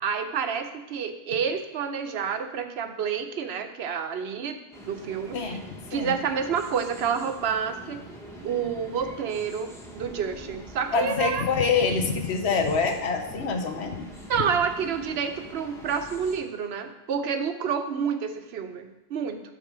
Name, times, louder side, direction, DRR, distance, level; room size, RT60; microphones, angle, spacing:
voice 1, 0.0-5.6 5.9-8.0 8.4-11.5 14.3-19.4, right 6 dB, 75° right, 7 dB, 0.9 m, -29 dB
sound 1, 4.7-16.4, equal, 5° left, 1.0 m, -44 dB
voice 2, 10.9-14.1, left 5 dB, 75° left, 5 dB, 1.1 m, -25 dB
8.4 x 3.9 x 6.0 m, 1.0 s
omnidirectional pair, 1.1 m